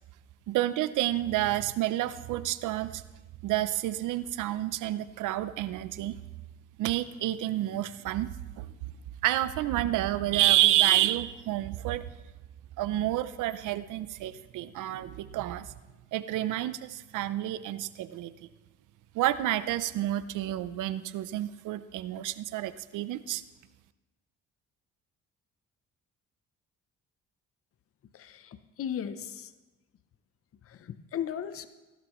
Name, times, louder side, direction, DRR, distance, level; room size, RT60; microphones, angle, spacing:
voice 1, 0.5-3.0 3.4-6.2 6.8-8.3 8.6-8.7 9.2-12.1 12.8-15.7 16.1-18.3 19.1-23.4, right 14 dB, 85° right, 14 dB, 0.6 m, -29 dB
voice 2, 28.1-29.5 31.1-31.7, left 9 dB, 50° left, 12 dB, 0.7 m, -35 dB
16.0 x 12.0 x 3.1 m, 1.1 s
cardioid pair, 90°, 30 cm